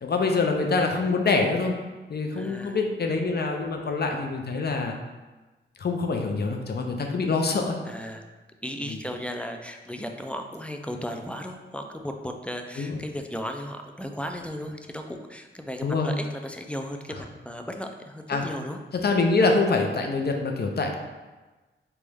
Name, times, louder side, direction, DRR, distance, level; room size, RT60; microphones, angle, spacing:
voice 1, 0.0-1.7 2.1-5.0 5.8-7.8 8.9-9.0 12.8-13.0 15.8-16.1 18.3-18.4 19.0-21.0, left 3 dB, 50° left, 3 dB, 0.6 m, -25 dB
voice 2, 2.3-2.8 7.9-8.2 8.6-18.8, equal, 5° left, 4 dB, 0.3 m, -35 dB
4.0 x 3.5 x 3.3 m, 1.2 s
wide cardioid pair, 125°, 21 cm